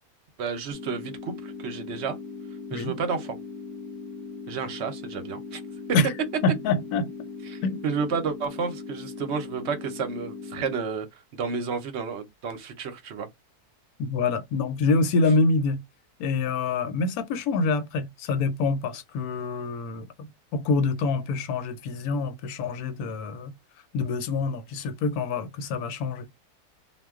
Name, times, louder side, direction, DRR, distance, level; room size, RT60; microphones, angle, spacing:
voice 1, 0.4-2.2 2.7-3.4 4.5-5.6 7.4-13.3, right 5 dB, 60° right, 0.7 m, -31 dB
sound 1, 0.7-10.7, left 5 dB, ahead, 0.6 m, -39 dB
voice 2, 6.4-7.1 7.6-7.8 14.0-15.8 16.2-20.1 20.5-23.5 23.9-26.3, left 3 dB, 80° left, 1.1 m, -26 dB
2.4 x 2.2 x 3.4 m
omnidirectional pair, 1.6 m